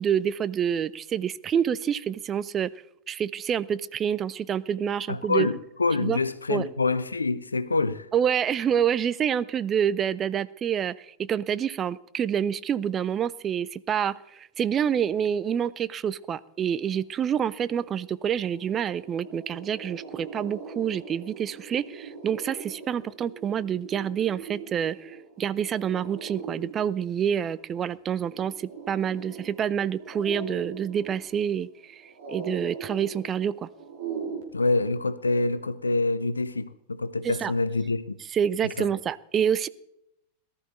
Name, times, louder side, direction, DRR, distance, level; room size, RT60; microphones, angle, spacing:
voice 1, 0.0-2.7 3.1-5.5 6.0-6.2 6.5-6.7 8.1-28.5 28.9-32.0 32.3-33.7 37.2-37.5 38.3-39.7, right 8 dB, 25° right, 0.5 m, -27 dB
voice 2, 5.1-8.1 34.5-38.2 38.8-38.9, left 3 dB, 80° left, 0.8 m, -26 dB
sound 1, 17.9-18.0 18.2-34.4, right 5 dB, 55° right, 3.3 m, -41 dB
18.0 x 12.5 x 4.2 m
figure-of-eight pair, 90°, 0 cm